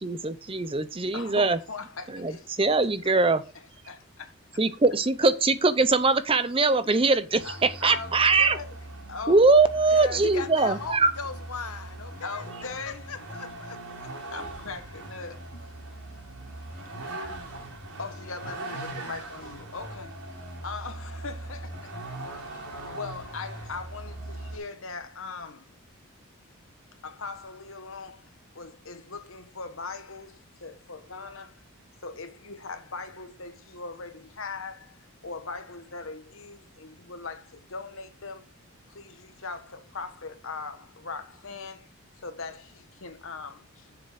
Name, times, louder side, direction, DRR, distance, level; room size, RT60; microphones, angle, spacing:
voice 1, 0.0-1.6 2.1-2.3 2.6-3.4 4.6-8.6 9.3-11.1, right 3 dB, 25° right, 0.6 m, -22 dB
voice 2, 1.1-2.5 3.0-3.1 3.9-4.0 7.4-8.7 9.1-9.5 9.9-10.2 12.2-13.1 14.3-15.4 18.0-20.2 20.6-22.6 22.9-25.7 27.0-31.6 32.0-38.4 38.9-44.0, left 4 dB, 65° left, 1.2 m, -40 dB
Vehicle, 7.4-24.6, right 2 dB, 90° right, 3.7 m, -40 dB
voice 3, 9.9-14.4, left 5 dB, 90° left, 1.0 m, -39 dB
7.4 x 7.2 x 5.0 m
head